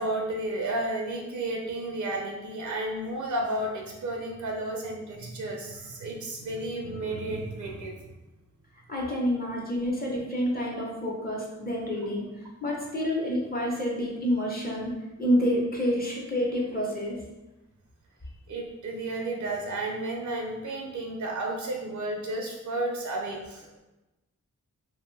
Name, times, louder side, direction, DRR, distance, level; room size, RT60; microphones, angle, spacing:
voice 1, 0.0-8.0 18.5-23.8, right 1 dB, 75° right, 0 dB, 0.5 m, -32 dB
voice 2, 8.9-12.3 12.6-17.2, equal, 30° left, -3 dB, 0.6 m, -28 dB
2.5 x 2.1 x 3.1 m, 1.0 s
wide cardioid pair, 95°, 30 cm